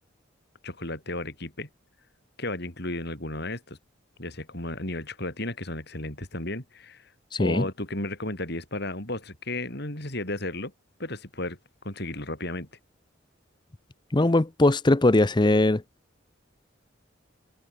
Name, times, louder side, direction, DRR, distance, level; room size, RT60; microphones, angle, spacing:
voice 1, 0.6-1.7 2.4-3.8 4.2-7.1 7.4-10.7 11.0-11.6 11.8-12.7, left 2 dB, 55° left, 6.9 m, -33 dB
voice 2, 14.1-15.8, left 2 dB, 25° left, 0.6 m, -20 dB
open air
head